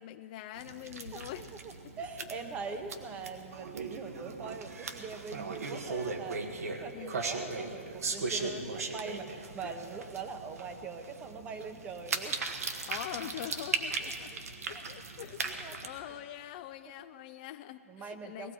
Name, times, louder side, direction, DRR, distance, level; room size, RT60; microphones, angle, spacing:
voice 1, 0.0-1.5 2.2-2.3 6.9-7.2 8.4-8.7 12.9-14.3 14.7-18.5, left 13 dB, 35° left, 10 dB, 0.3 m, -44 dB
sound 1, 0.6-15.9, right 4 dB, 90° right, 1.3 m, -38 dB
voice 2, 1.1-8.5 8.9-12.4 13.9-14.4 14.7-14.8 15.4-15.8 16.1-16.2 16.8-16.9 17.9-18.5, right 4 dB, 15° right, 8 dB, 0.8 m, -43 dB
19.0 x 14.5 x 4.5 m, 2.7 s
hypercardioid pair, 150°, 8 cm